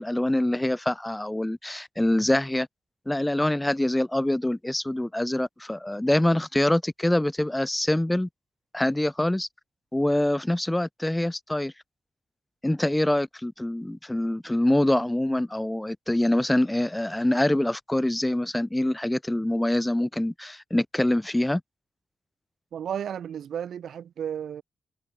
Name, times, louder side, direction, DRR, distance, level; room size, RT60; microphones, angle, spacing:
voice 1, 0.0-2.7 3.1-8.3 8.7-9.5 9.9-11.7 12.6-21.6, left 1 dB, 10° left, 6.9 m, -25 dB
voice 2, 22.7-24.6, right 9 dB, 85° right, 6.5 m, -33 dB
cardioid pair, 95°, 0 cm